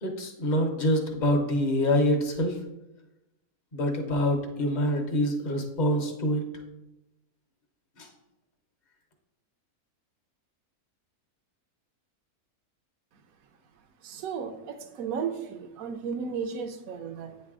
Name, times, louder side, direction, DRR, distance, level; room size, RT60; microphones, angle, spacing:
voice 1, 0.0-2.5 3.7-6.4 8.0-8.1, equal, 40° left, 3 dB, 0.7 m, -26 dB
voice 2, 14.0-17.4, right 6 dB, 70° right, 8 dB, 1.0 m, -34 dB
8.8 x 3.2 x 3.6 m, 0.93 s
omnidirectional pair, 1.6 m